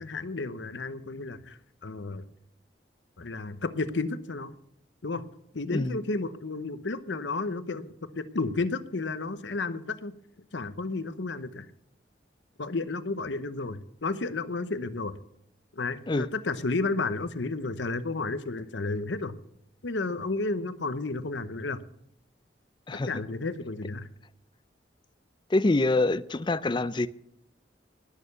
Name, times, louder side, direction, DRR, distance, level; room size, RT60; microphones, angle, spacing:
voice 1, 0.0-2.2 3.2-4.5 5.0-5.2 5.5-10.1 10.5-11.7 12.6-15.1 15.8-19.4 19.8-21.8 23.1-24.1, left 3 dB, 85° left, 0.9 m, -32 dB
voice 2, 25.5-27.1, left 2 dB, 25° left, 0.5 m, -25 dB
19.5 x 6.7 x 6.9 m
head